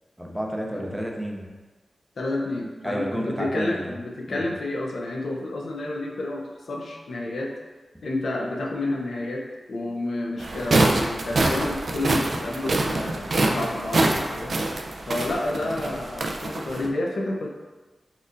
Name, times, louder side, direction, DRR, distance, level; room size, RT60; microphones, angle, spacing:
voice 1, 0.2-1.5 2.8-3.9 4.3-4.4, equal, 5° right, 0 dB, 0.5 m, -31 dB
voice 2, 2.2-7.5 8.0-14.6 15.1-17.5, left 2 dB, 80° left, -1 dB, 0.5 m, -30 dB
sound 1, 10.4-16.9, right 2 dB, 60° right, 0.3 m, -25 dB
4.1 x 2.4 x 2.5 m, 1.3 s
wide cardioid pair, 80°, 0 cm